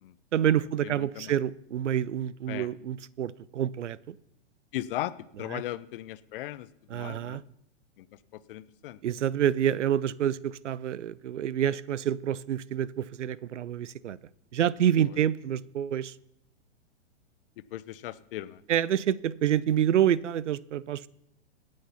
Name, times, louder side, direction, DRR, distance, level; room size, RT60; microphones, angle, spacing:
voice 1, 0.3-4.2 5.5-5.6 6.9-7.4 9.0-14.2 14.5-16.2 18.7-21.1, right 10 dB, 85° right, 20 dB, 0.5 m, -27 dB
voice 2, 0.8-1.3 2.5-2.7 4.7-7.4 8.0-8.1 8.3-9.0 17.7-18.6, left 14 dB, 50° left, 16 dB, 0.7 m, -37 dB
17.5 x 6.6 x 5.6 m, 0.80 s
hypercardioid pair, 120°, 35 cm